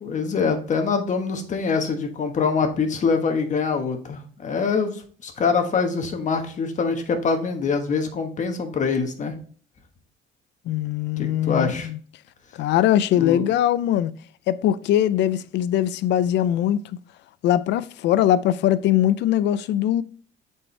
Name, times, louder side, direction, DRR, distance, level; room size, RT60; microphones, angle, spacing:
voice 1, 0.0-9.4 11.2-11.9 13.2-13.5, left 5 dB, 40° left, 1.3 m, -24 dB
voice 2, 10.7-12.0 12.6-14.1 14.5-16.8 17.4-20.0, left 12 dB, 65° left, 0.4 m, -21 dB
7.6 x 4.5 x 3.2 m
cardioid pair, 120°, 20 cm